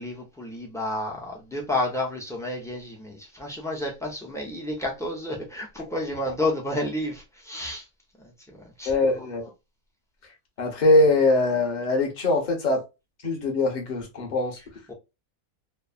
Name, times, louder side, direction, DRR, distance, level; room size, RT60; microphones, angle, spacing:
voice 1, 0.0-7.9 8.2-9.2 14.9-15.0, left 1 dB, 5° left, 0.4 m, -31 dB
voice 2, 8.8-9.5 10.6-12.8 13.2-14.6, left 2 dB, 40° left, 0.8 m, -22 dB
3.1 x 2.0 x 2.3 m
omnidirectional pair, 1.5 m